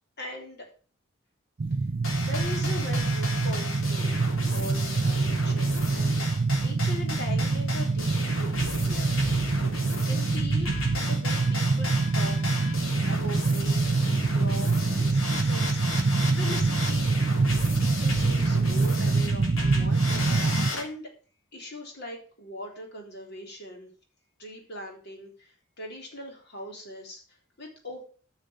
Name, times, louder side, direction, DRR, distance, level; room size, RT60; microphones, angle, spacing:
voice 1, 0.2-0.7 1.7-1.9 2.2-4.2 4.5-6.3 6.6-9.2 9.9-12.4 13.1-14.0 14.3-15.8 16.2-17.2 17.8-20.4 20.7-21.1 21.5-23.9 24.4-28.1, left 1 dB, 55° left, 2 dB, 3.7 m, -40 dB
sound 1, 1.6-20.7, right 3 dB, 45° right, 0.5 m, -25 dB
sound 2, 2.0-20.8, left 2 dB, 80° left, 3.3 m, -35 dB
10.0 x 6.6 x 7.6 m, 0.40 s
head